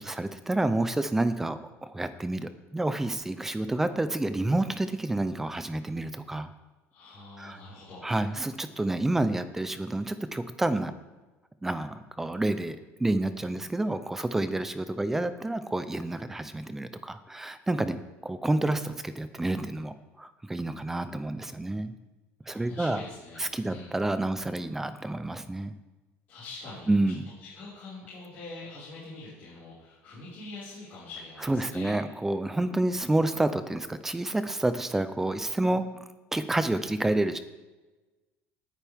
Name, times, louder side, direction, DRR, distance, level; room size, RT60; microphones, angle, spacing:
voice 1, 0.0-6.5 7.4-7.6 8.0-10.9 11.6-21.9 22.5-23.0 23.4-25.7 26.9-27.2 31.5-35.9 36.3-37.4, right 2 dB, 5° right, 11 dB, 0.6 m, -29 dB
voice 2, 6.9-8.1 22.4-23.9 26.3-31.9, left 3 dB, 30° left, -12 dB, 5.3 m, -44 dB
19.0 x 9.2 x 3.6 m, 1.2 s
cardioid pair, 175°, 6 cm